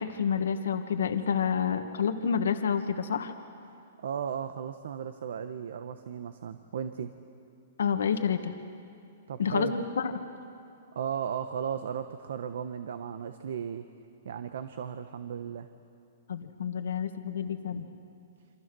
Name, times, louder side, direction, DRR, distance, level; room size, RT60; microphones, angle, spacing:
voice 1, 0.0-3.3 7.8-8.5 9.4-10.1 16.3-17.9, left 7 dB, 90° left, 7 dB, 1.6 m, -29 dB
voice 2, 4.0-7.1 9.3-9.7 10.9-13.8 14.2-15.7, right 8 dB, 70° right, 10 dB, 1.0 m, -35 dB
28.0 x 26.0 x 6.2 m, 2.5 s
hypercardioid pair, 165°, 0 cm